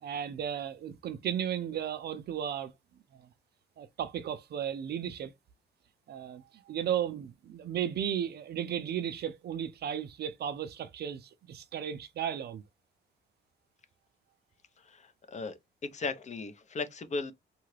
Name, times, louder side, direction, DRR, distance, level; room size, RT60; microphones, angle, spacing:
voice 1, 0.0-2.7 3.1-3.3 3.8-5.3 6.1-12.6, right 9 dB, 55° right, 0.4 m, -35 dB
voice 2, 14.8-17.3, left 4 dB, 35° left, 0.5 m, -37 dB
2.7 x 2.3 x 3.1 m
cardioid pair, 90°, 20 cm